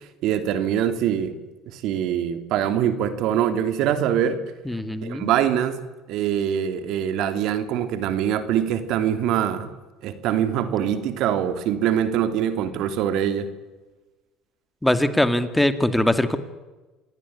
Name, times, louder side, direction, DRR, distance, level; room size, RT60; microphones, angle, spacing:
voice 1, 0.2-1.4 1.7-4.4 5.0-5.8 6.1-9.7 10.0-13.5, right 9 dB, 65° right, 10 dB, 3.0 m, -23 dB
voice 2, 4.7-5.3 14.8-16.4, left 1 dB, 5° left, 11 dB, 2.4 m, -21 dB
27.0 x 18.5 x 9.7 m, 1.2 s
supercardioid pair, 90°, 0 cm